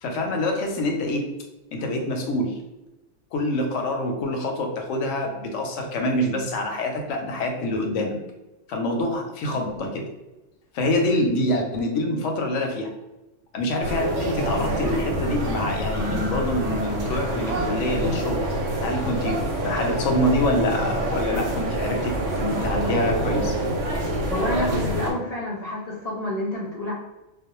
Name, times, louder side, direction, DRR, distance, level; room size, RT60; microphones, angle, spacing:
voice 1, 0.0-1.2 1.7-2.5 3.3-8.2 8.7-10.1 10.7-12.9 13.5-18.5 18.8-23.5, left 1 dB, 90° left, 2 dB, 0.9 m, -26 dB
sound 1, 13.8-25.1, right 1 dB, 90° right, 0.9 m, -26 dB
voice 2, 24.3-26.9, left 1 dB, 55° left, -5 dB, 0.4 m, -28 dB
2.4 x 2.0 x 2.9 m, 1.0 s
omnidirectional pair, 1.2 m